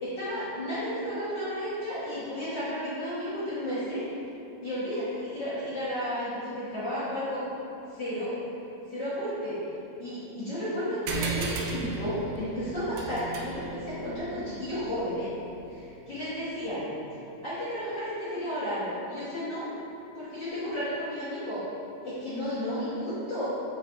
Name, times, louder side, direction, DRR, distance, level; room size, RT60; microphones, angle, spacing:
voice 1, 0.0-4.0 4.6-7.4 7.9-8.4 8.9-9.6 10.0-15.3 15.7-15.8 16.1-16.9 17.4-19.6 20.1-21.6 22.0-23.5, equal, 45° left, -14 dB, 1.5 m, -32 dB
sound 1, 11.1-16.0, right 4 dB, 80° right, 2.1 m, -36 dB
5.8 x 4.1 x 4.0 m, 2.7 s
omnidirectional pair, 4.1 m